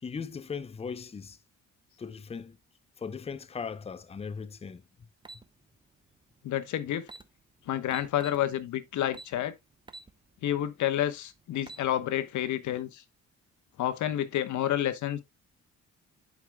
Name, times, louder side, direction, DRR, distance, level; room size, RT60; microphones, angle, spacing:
voice 1, 0.0-1.4 2.0-2.6 3.0-4.8, left 5 dB, 20° left, 0.5 m, -38 dB
sound 1, 5.2-5.4 6.7-6.8 7.0-7.3 7.9-8.4 9.1-9.4 9.9-10.1 10.5-10.6 11.4-11.9, right 2 dB, 15° right, 0.7 m, -45 dB
voice 2, 6.4-7.1 7.7-9.5 10.4-13.0 13.8-15.2, left 12 dB, 70° left, 1.0 m, -29 dB
11.5 x 4.8 x 2.2 m
cardioid pair, 90°, 30 cm